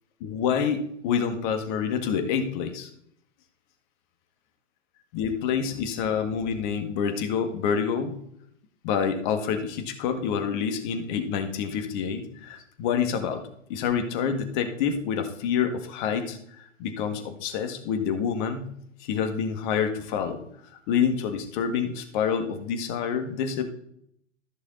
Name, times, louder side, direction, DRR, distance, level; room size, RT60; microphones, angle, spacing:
voice 1, 0.2-2.9 5.1-8.2 8.8-13.4 13.7-18.7 19.0-20.4 20.9-23.6, left 7 dB, 40° left, 7 dB, 1.8 m, -27 dB
14.0 x 6.3 x 4.0 m, 0.71 s
hypercardioid pair, 125°, 38 cm